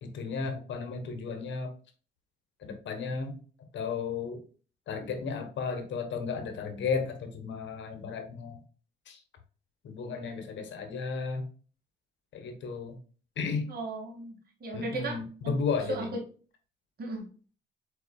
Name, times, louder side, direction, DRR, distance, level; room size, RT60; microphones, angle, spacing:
voice 1, 0.0-1.7 2.6-3.4 3.7-4.4 4.9-8.6 9.1-9.2 9.8-11.5 12.3-13.0 13.4-13.6 14.7-16.1, left 5 dB, 70° left, 6 dB, 1.1 m, -34 dB
voice 2, 13.7-15.2 15.9-16.2 17.0-17.3, right 2 dB, 50° right, 0 dB, 2.0 m, -35 dB
4.7 x 4.4 x 2.3 m, 0.39 s
cardioid pair, 90°, 20 cm